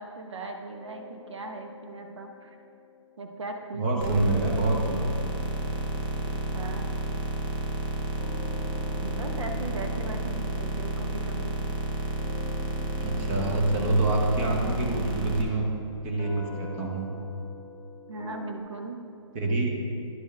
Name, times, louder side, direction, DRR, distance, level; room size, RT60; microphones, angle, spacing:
voice 1, 0.0-2.6 3.2-4.2 6.5-6.9 9.0-11.5 18.1-19.0, right 3 dB, 65° right, 4 dB, 1.0 m, -38 dB
sound 1, 0.7-3.9 4.2-18.6, left 6 dB, 20° left, 0.7 m, -48 dB
voice 2, 3.7-5.1 13.0-15.7 16.0-17.1 19.3-19.7, right 2 dB, 20° right, 0 dB, 0.9 m, -26 dB
sound 2, 4.0-15.4, right 1 dB, 45° right, 1.1 m, -31 dB
11.0 x 4.4 x 3.5 m, 2.6 s
hypercardioid pair, 160°, 16 cm